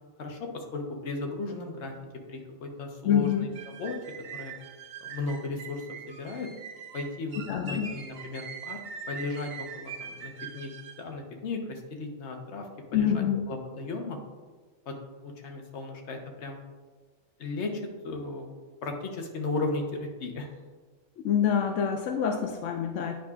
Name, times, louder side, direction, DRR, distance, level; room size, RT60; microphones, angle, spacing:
voice 1, 0.2-1.9 2.3-4.0 4.3-4.5 5.0-6.5 6.9-8.8 9.1-10.7 11.0-14.2 14.9-15.0 15.2-16.6 17.4-18.6 18.8-20.5, left 3 dB, 70° left, 2 dB, 1.2 m, -35 dB
voice 2, 3.0-3.5 7.5-7.9 12.9-13.5 21.2-23.2, left 8 dB, 90° left, 3 dB, 0.9 m, -26 dB
sound 1, 3.3-11.1, right 6 dB, 60° right, 0.8 m, -42 dB
9.3 x 5.0 x 2.4 m, 1.3 s
omnidirectional pair, 1.2 m